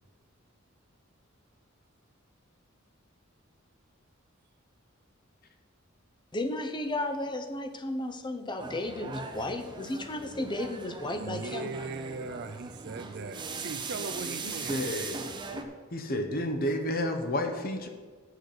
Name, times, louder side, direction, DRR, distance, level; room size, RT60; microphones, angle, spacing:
voice 1, 6.3-11.7, left 1 dB, 25° left, 7 dB, 0.7 m, -34 dB
sound 1, 8.6-15.6, right 3 dB, 25° right, 0.8 m, -39 dB
voice 2, 11.2-14.8 15.5-15.6, right 4 dB, 55° right, 10 dB, 0.5 m, -39 dB
voice 3, 14.4-15.2 15.9-17.9, left 1 dB, 50° left, 5 dB, 1.0 m, -31 dB
8.0 x 6.5 x 6.6 m, 1.5 s
head